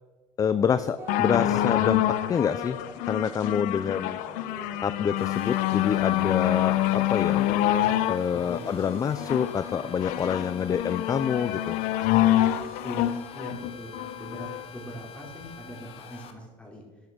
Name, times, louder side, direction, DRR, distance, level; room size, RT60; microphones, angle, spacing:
voice 1, 0.4-2.8 3.1-4.2 4.8-7.4 8.1-11.8, left 7 dB, 25° left, 14 dB, 0.4 m, -27 dB
sound 1, 1.0-12.6, right 1 dB, 15° right, 3.7 m, -44 dB
sound 2, 1.1-14.6 15.4-15.5, left 14 dB, 75° left, 0.8 m, -26 dB
sound 3, 5.2-16.3, left 6 dB, 45° left, 1.7 m, -46 dB
voice 2, 8.3-8.6 12.8-16.8, right 1 dB, 10° left, -2 dB, 4.7 m, -41 dB
11.5 x 11.0 x 6.1 m, 1.2 s
cardioid pair, 125°, 13 cm